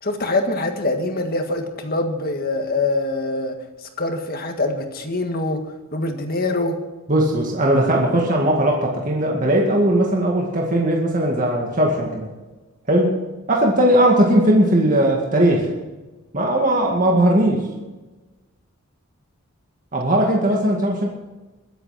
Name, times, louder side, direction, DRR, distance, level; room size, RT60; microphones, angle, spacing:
voice 1, 0.0-3.6 3.8-5.6 5.9-6.8, left 2 dB, 45° left, 5 dB, 1.8 m, -24 dB
voice 2, 7.1-12.3 12.9-13.2 13.5-15.7 16.3-17.6 19.9-21.0, right 1 dB, 35° right, -1 dB, 2.1 m, -18 dB
22.5 x 8.3 x 5.9 m, 1.2 s
head